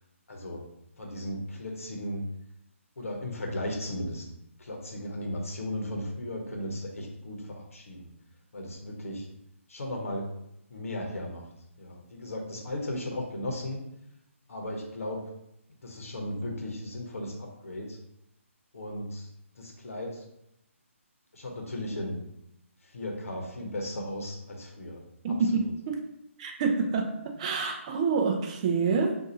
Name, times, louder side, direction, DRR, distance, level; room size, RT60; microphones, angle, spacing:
voice 1, 0.3-0.6 1.0-2.2 3.0-4.2 4.6-8.1 8.5-9.3 9.7-10.3 10.7-11.4 11.8-13.8 14.5-15.3 15.8-18.0 18.7-19.3 19.6-20.2 21.3-22.2 22.8-25.0 25.3-25.7, left 1 dB, 75° left, 1 dB, 0.9 m, -36 dB
voice 2, 25.2-26.0 26.4-29.2, right 4 dB, 30° right, 4 dB, 0.4 m, -27 dB
2.6 x 2.4 x 4.2 m, 0.80 s
hypercardioid pair, 150°, 7 cm